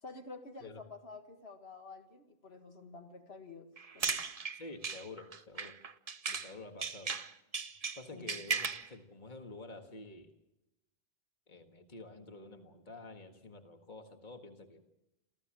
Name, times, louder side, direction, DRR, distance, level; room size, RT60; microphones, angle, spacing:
voice 1, 0.0-4.2 8.1-8.3, left 3 dB, 85° left, 5 dB, 2.0 m, -50 dB
sound 1, 3.8-6.5 6.8-8.9, right 5 dB, 40° right, 0.9 m, -37 dB
voice 2, 4.5-5.8 6.3-7.2 8.0-10.3 11.5-14.8, left 2 dB, 50° left, 5 dB, 1.9 m, -49 dB
28.0 x 14.5 x 7.5 m, 0.91 s
omnidirectional pair, 1.0 m